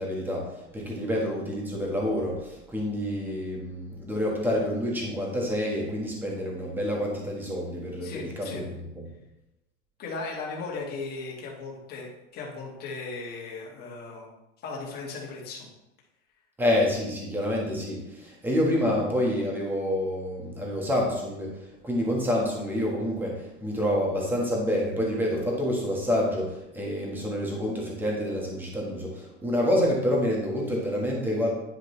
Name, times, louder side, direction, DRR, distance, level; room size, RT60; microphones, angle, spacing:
voice 1, 0.0-9.1 16.6-21.5 21.8-31.5, left 1 dB, 5° right, -2 dB, 1.5 m, -28 dB
voice 2, 8.0-8.8 10.0-14.3 14.6-15.7, left 3 dB, 25° left, -3 dB, 1.9 m, -37 dB
10.0 x 5.1 x 3.3 m, 0.94 s
supercardioid pair, 155°, 35 cm